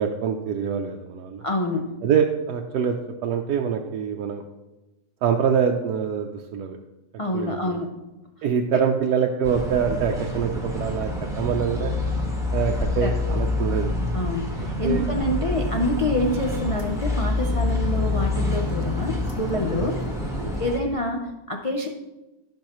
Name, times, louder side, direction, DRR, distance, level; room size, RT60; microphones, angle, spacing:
voice 1, 0.0-1.4 2.0-3.0 3.2-4.4 5.2-6.8 7.3-7.8 8.4-11.1 11.4-11.9 12.5-13.9 14.8-15.0 19.7-19.9 20.4-20.5, right 7 dB, 80° right, 2 dB, 1.2 m, -25 dB
voice 2, 1.4-2.0 7.2-7.9 8.7-8.8 13.0-13.1 14.1-20.0 20.6-21.9, left 1 dB, 55° left, 1 dB, 0.3 m, -27 dB
sound 1, 9.4-20.8, left 2 dB, ahead, 1.2 m, -27 dB
sound 2, 15.5-20.6, left 1 dB, 20° left, 0.7 m, -42 dB
16.0 x 5.5 x 3.0 m, 1.0 s
omnidirectional pair, 1.7 m